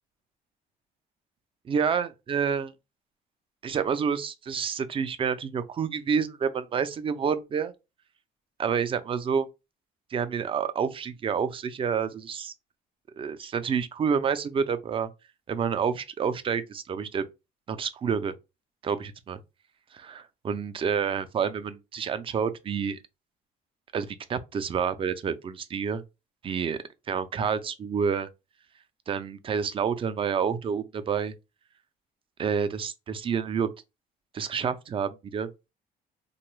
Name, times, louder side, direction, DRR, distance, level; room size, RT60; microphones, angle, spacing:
voice 1, 1.7-2.7 3.6-7.7 8.6-9.5 10.1-12.5 13.2-15.1 15.5-17.3 17.7-18.3 18.8-19.4 19.9-23.0 23.9-26.0 26.4-26.8 27.1-28.3 29.1-31.3 32.4-33.7 34.3-35.5, right 6 dB, 30° right, 0.4 m, -28 dB
2.8 x 2.2 x 3.1 m
cardioid pair, 110°, 17 cm